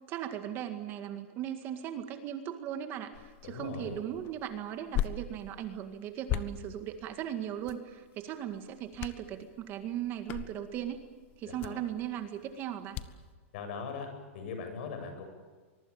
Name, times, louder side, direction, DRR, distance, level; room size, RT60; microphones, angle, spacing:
voice 1, 0.1-11.0 11.4-13.0, right 10 dB, 30° right, 8 dB, 1.9 m, -38 dB
sound 1, 3.1-13.3, left 11 dB, 30° left, 1.1 m, -41 dB
voice 2, 3.4-4.0 11.4-11.8 13.5-14.1 14.3-15.2, left 5 dB, 55° left, 6 dB, 7.8 m, -40 dB
24.5 x 23.0 x 8.8 m, 1.4 s
supercardioid pair, 160°, 7 cm